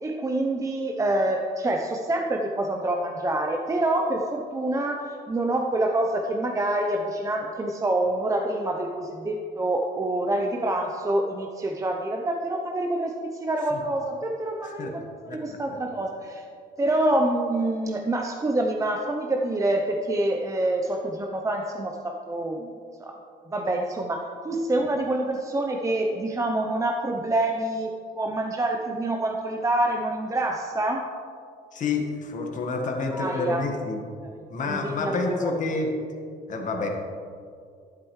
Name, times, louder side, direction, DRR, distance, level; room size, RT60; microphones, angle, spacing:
voice 1, 0.0-16.4 16.8-22.7 23.0-23.2 23.5-31.1 33.1-33.7 34.2-34.4 34.7-35.5, right 1 dB, 20° right, 2 dB, 0.7 m, -26 dB
voice 2, 31.7-34.0 34.5-35.9 36.5-36.9, left 3 dB, 50° left, 2 dB, 1.5 m, -28 dB
11.0 x 9.9 x 3.2 m, 2.3 s
cardioid pair, 110°, 17 cm